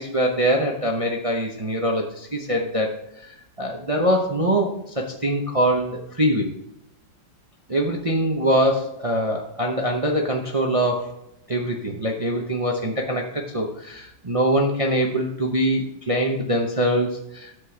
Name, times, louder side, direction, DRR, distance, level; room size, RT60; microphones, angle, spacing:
voice 1, 0.0-6.5 7.7-11.1 11.5-17.6, right 1 dB, 50° right, 1 dB, 0.4 m, -23 dB
9.7 x 7.6 x 3.3 m, 0.80 s
omnidirectional pair, 2.1 m